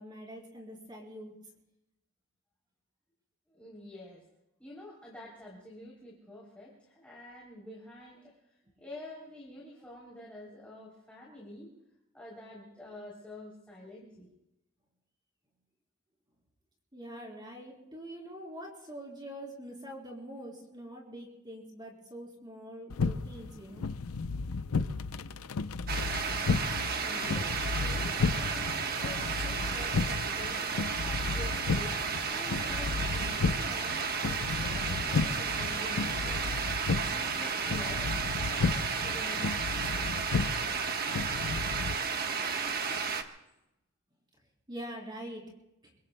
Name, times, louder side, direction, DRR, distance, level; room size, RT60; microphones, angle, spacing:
voice 1, 0.0-1.3 16.9-23.9 44.7-45.4, equal, 20° right, -2 dB, 3.8 m, -44 dB
voice 2, 3.5-4.2 4.6-11.7 12.1-14.3 27.0-39.5, left 1 dB, 5° left, -5 dB, 3.3 m, -48 dB
sound 1, 22.9-42.0, left 4 dB, 90° left, 0.6 m, -33 dB
sound 2, 25.9-43.2, right 5 dB, 45° right, 1.2 m, -33 dB
26.0 x 24.5 x 2.2 m, 0.90 s
head